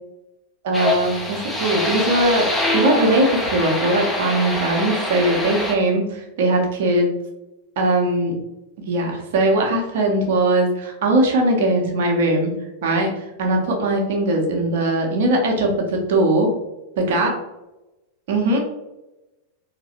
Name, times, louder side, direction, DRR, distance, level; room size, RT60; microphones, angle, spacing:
voice 1, 0.6-7.1 7.8-8.3 8.9-12.5 12.8-13.1 13.4-16.5 17.0-17.3 18.3-18.6, right 1 dB, 55° right, 1 dB, 1.0 m, -20 dB
sound 1, 0.7-5.7, left 2 dB, 10° left, 0.9 m, -24 dB
3.9 x 2.9 x 3.0 m, 0.97 s
figure-of-eight pair, 90°, 0 cm